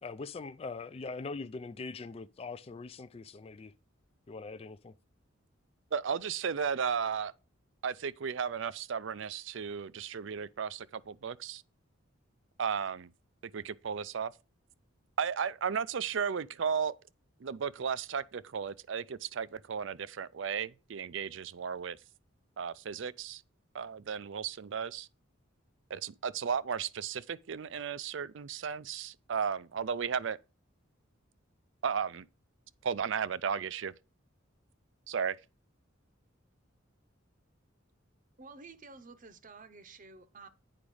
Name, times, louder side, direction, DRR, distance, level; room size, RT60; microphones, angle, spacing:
voice 1, 0.0-3.7 4.3-4.9, left 4 dB, 30° left, 0.4 m, -42 dB
voice 2, 5.9-7.3 7.8-11.6 12.6-13.1 13.5-14.3 15.2-16.9 17.4-22.0 22.6-23.4 23.7-25.1 25.9-30.4 31.8-32.3 32.8-33.9 35.1-35.4, right 6 dB, 65° right, 0.5 m, -34 dB
voice 3, 38.4-40.5, right 4 dB, 40° right, 0.8 m, -51 dB
8.7 x 5.1 x 4.8 m
head